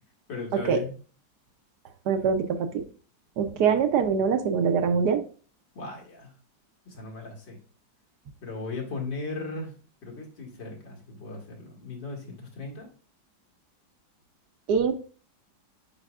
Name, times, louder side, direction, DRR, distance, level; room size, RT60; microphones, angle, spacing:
voice 1, 0.3-0.9 5.8-6.3 6.9-7.6 8.4-9.7 10.0-12.9, left 3 dB, 80° left, -1 dB, 2.7 m, -37 dB
voice 2, 2.1-2.8 3.4-5.2 14.7-15.0, right 6 dB, 70° right, 7 dB, 1.2 m, -24 dB
8.8 x 5.0 x 2.4 m, 0.39 s
omnidirectional pair, 2.0 m